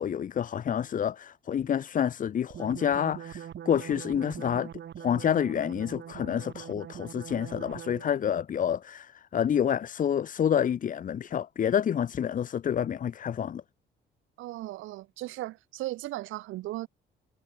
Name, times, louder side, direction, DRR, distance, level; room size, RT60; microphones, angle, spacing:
voice 1, 0.0-4.7 5.0-13.6, left 9 dB, 40° left, 0.6 m, -28 dB
sound 1, 2.5-8.3, right 9 dB, 65° right, 6.9 m, -42 dB
voice 2, 14.4-16.9, right 16 dB, 85° right, 0.9 m, -36 dB
cardioid pair, 90°, 20 cm